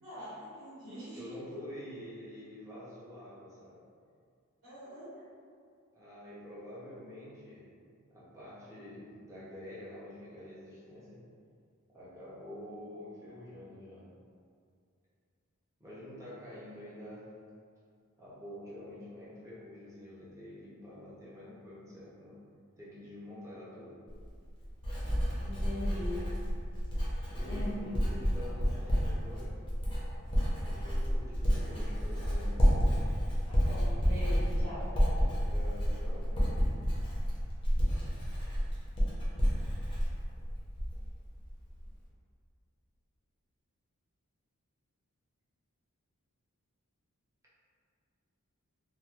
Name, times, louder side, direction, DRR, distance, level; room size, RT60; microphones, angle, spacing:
voice 1, 0.0-1.3 4.6-5.1 25.4-26.3 27.0-28.0 33.4-34.8, left 1 dB, 70° right, -15 dB, 1.4 m, -42 dB
voice 2, 1.1-3.8 5.9-7.7 8.1-11.2 11.9-14.1 15.8-17.3 18.2-22.4 22.8-24.0 27.3-29.6 30.6-33.0 35.3-36.7, left 1 dB, 15° right, -9 dB, 0.7 m, -47 dB
Writing, 24.1-41.1 41.4-41.9, equal, 25° left, 0.6 m, -30 dB
3.0 x 2.4 x 2.3 m, 2.2 s
head